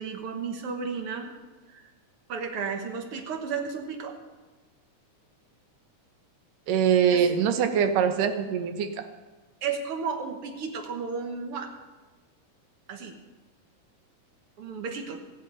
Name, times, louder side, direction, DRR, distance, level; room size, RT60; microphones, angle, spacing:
voice 1, 0.0-1.3 1.7-1.8 2.3-4.2 7.1-7.3 9.6-11.7 12.9-13.1 14.6-15.2, right 5 dB, 55° right, 5 dB, 1.7 m, -33 dB
voice 2, 6.7-9.1, right 8 dB, 75° right, 8 dB, 2.5 m, -23 dB
27.0 x 9.7 x 4.0 m, 1.3 s
omnidirectional pair, 3.9 m